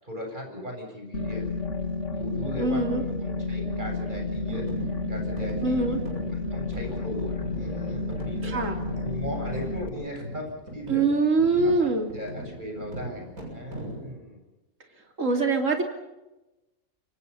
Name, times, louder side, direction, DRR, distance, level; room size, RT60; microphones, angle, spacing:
voice 1, 0.0-1.5 2.1-4.7 5.1-8.5 9.0-11.1 11.6-14.4, equal, 35° right, 2 dB, 7.8 m, -38 dB
sound 1, 1.1-9.9, left 3 dB, 60° left, 1.9 m, -31 dB
voice 2, 2.6-3.0 5.6-6.0 8.4-8.7 10.9-12.1 15.2-15.8, right 3 dB, 65° right, 3 dB, 3.4 m, -23 dB
sound 2, 4.5-14.1, right 1 dB, 80° right, 8.1 m, -40 dB
28.5 x 25.0 x 5.7 m, 1.0 s
omnidirectional pair, 1.5 m